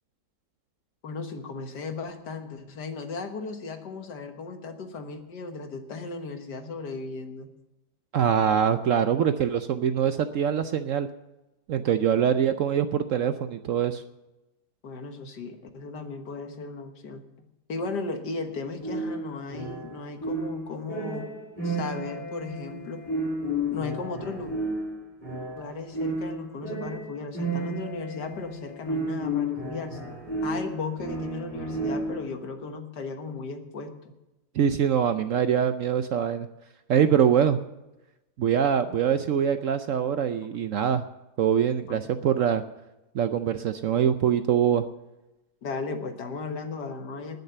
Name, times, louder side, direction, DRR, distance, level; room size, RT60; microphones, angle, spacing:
voice 1, 1.0-7.5 12.2-12.3 14.8-17.2 17.7-21.3 21.6-23.0 23.7-24.5 25.6-30.1 30.4-33.9 41.9-42.1 45.6-47.4, left 4 dB, 75° left, 6 dB, 2.0 m, -36 dB
voice 2, 8.1-11.1 11.7-14.0 34.5-36.5 36.9-37.6 38.4-41.0 41.4-42.6 43.1-44.8, right 8 dB, 65° right, 10 dB, 0.8 m, -23 dB
sound 1, 18.8-32.4, right 1 dB, 20° right, 4.9 m, -32 dB
19.5 x 6.6 x 6.8 m, 0.97 s
omnidirectional pair, 1.8 m